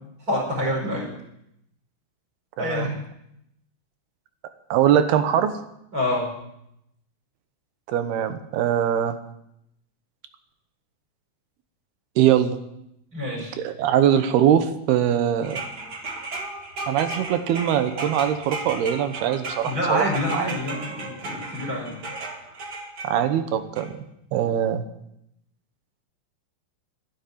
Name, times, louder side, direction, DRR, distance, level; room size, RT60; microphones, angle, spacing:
voice 1, 0.3-1.1 2.6-2.9 5.9-6.3 13.1-13.5 19.6-22.0, left 1 dB, 20° right, -1 dB, 5.6 m, -26 dB
voice 2, 2.6-2.9 4.7-5.5 7.9-9.1 12.2-12.6 13.6-15.6 16.9-20.6 23.0-23.9 24.3-24.8, right 10 dB, 85° right, 9 dB, 3.1 m, -22 dB
sound 1, 15.4-23.1 23.8-23.9, right 2 dB, 40° right, 1.5 m, -35 dB
12.0 x 10.0 x 9.3 m, 0.79 s
omnidirectional pair, 4.4 m